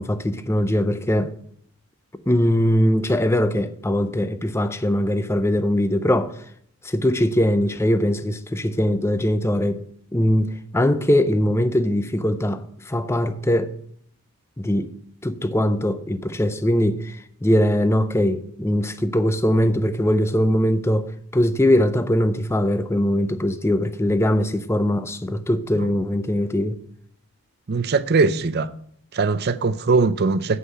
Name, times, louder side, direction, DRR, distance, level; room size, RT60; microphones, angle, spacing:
voice 1, 0.0-1.3 2.3-6.4 6.8-9.8 10.1-13.7 14.6-14.9 15.2-26.8, left 1 dB, 10° left, 0.5 m, -21 dB
voice 2, 27.7-28.7 29.1-30.6, right 4 dB, 45° right, 0.5 m, -20 dB
8.2 x 5.6 x 7.5 m
head